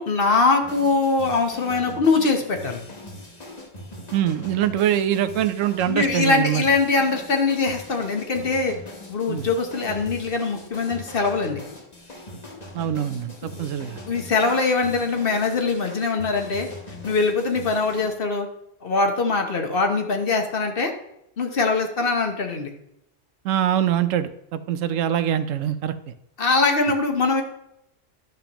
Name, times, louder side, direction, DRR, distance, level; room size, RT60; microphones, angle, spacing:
voice 1, 0.0-2.8 5.9-8.7 9.1-11.6 13.6-13.7 14.0-16.7 17.0-18.5 18.8-20.9 21.4-22.7 26.4-27.4, left 3 dB, 50° left, 4 dB, 1.1 m, -22 dB
sound 1, 0.6-18.1, left 1 dB, 35° left, 1.4 m, -41 dB
voice 2, 4.1-6.6 9.3-9.5 12.7-14.0 23.4-26.1, right 10 dB, 90° right, 12 dB, 1.0 m, -24 dB
10.5 x 6.9 x 3.0 m, 0.81 s
omnidirectional pair, 1.3 m